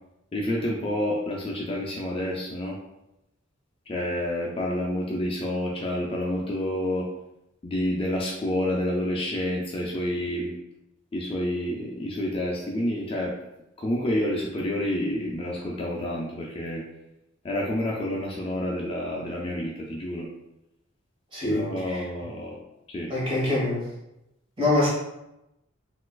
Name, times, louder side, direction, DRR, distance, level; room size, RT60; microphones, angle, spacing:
voice 1, 0.3-2.8 3.9-7.1 7.6-10.6 11.1-13.3 13.8-16.8 17.4-20.3 21.5-22.5 22.9-23.1, left 1 dB, 30° left, -2 dB, 0.4 m, -29 dB
voice 2, 21.3-22.0 23.1-23.9 24.6-24.9, left 2 dB, 25° right, -7 dB, 1.3 m, -25 dB
4.0 x 2.5 x 2.3 m, 0.89 s
head